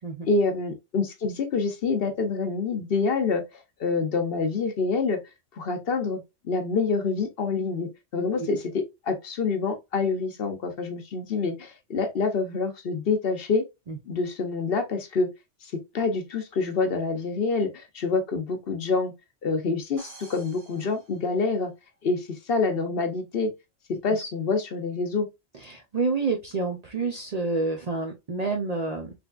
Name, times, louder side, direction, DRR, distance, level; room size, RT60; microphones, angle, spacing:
voice 1, 0.2-5.2 5.6-13.6 14.1-15.3 15.6-19.1 19.4-21.7 22.0-23.5 23.9-25.3, left 4 dB, 60° left, 0.8 m, -27 dB
sound 1, 20.0-21.9, right 2 dB, 85° right, 1.4 m, -49 dB
voice 2, 25.6-29.1, right 3 dB, 50° right, 0.5 m, -28 dB
3.4 x 3.2 x 2.3 m
omnidirectional pair, 1.2 m